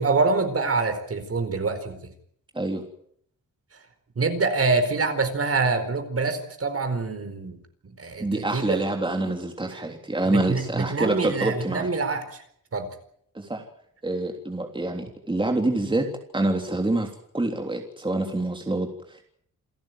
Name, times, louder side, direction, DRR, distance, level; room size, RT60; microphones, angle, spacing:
voice 1, 0.0-2.1 4.2-7.6 7.8-8.8 10.3-12.2 12.7-12.9, right 4 dB, 45° right, 8 dB, 4.6 m, -25 dB
voice 2, 8.2-11.9 13.3-13.6 14.0-16.1 16.3-19.3, right 2 dB, 15° right, 3 dB, 3.4 m, -26 dB
28.5 x 13.5 x 9.4 m, 0.67 s
cardioid pair, 110°, 33 cm